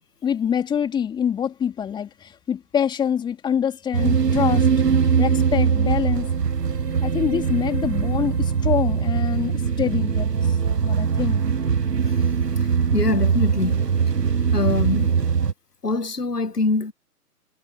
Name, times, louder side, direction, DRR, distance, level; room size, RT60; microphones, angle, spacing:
voice 1, 0.2-4.7 5.2-6.3 7.0-10.3 10.8-11.4, left 8 dB, 10° left, 2.8 m, -25 dB
sound 1, 3.9-15.5, right 6 dB, 85° right, 0.9 m, -21 dB
voice 2, 12.9-13.9 14.5-15.1 15.8-16.9, left 3 dB, 80° left, 1.6 m, -24 dB
figure-of-eight pair, 130°, 47 cm